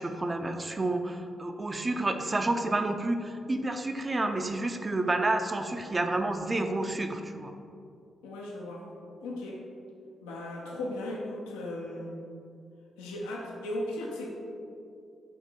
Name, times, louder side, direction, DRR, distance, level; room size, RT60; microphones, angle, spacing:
voice 1, 0.0-7.5, right 2 dB, 30° right, 6 dB, 0.6 m, -30 dB
voice 2, 8.2-8.9 9.2-9.6 10.2-12.1 13.0-14.3, left 1 dB, 85° left, -2 dB, 0.7 m, -36 dB
8.3 x 2.9 x 4.6 m, 2.5 s
hypercardioid pair, 40°, 0 cm